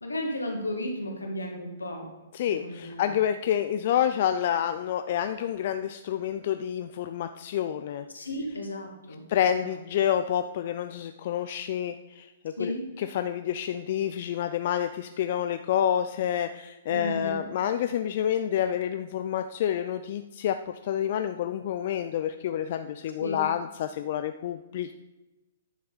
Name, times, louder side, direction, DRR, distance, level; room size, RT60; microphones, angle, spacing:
voice 1, 0.0-2.1 2.6-3.1 8.1-9.2 9.6-9.7 12.6-12.9 16.9-17.4 23.2-23.5, left 1 dB, 85° left, 1 dB, 2.1 m, -34 dB
voice 2, 2.3-8.1 9.3-24.9, left 10 dB, 50° left, 9 dB, 0.4 m, -28 dB
10.0 x 6.5 x 4.2 m, 1.0 s
figure-of-eight pair, 120°, 0 cm